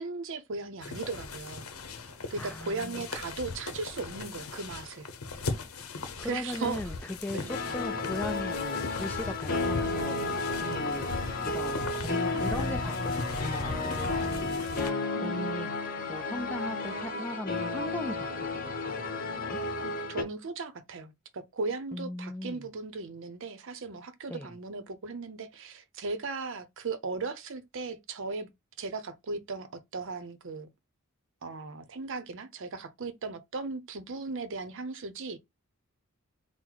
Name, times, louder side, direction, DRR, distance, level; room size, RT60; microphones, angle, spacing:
voice 1, 0.0-1.7 2.3-5.1 6.2-6.9 7.3-7.5 10.6-10.8 14.4-14.6 15.1-15.6 19.8-28.5 28.8-30.7 31.4-35.4, right 3 dB, 60° right, 0.6 m, -37 dB
sound 1, 0.8-14.9, left 3 dB, 75° left, 0.8 m, -39 dB
voice 2, 2.4-3.1 6.2-7.0 7.2-11.1 11.4-15.7 16.1-19.6 21.9-22.7 24.3-24.5, left 1 dB, 10° left, 0.4 m, -39 dB
sound 2, 7.5-20.2, left 3 dB, 40° left, 1.0 m, -32 dB
3.9 x 2.1 x 4.5 m
head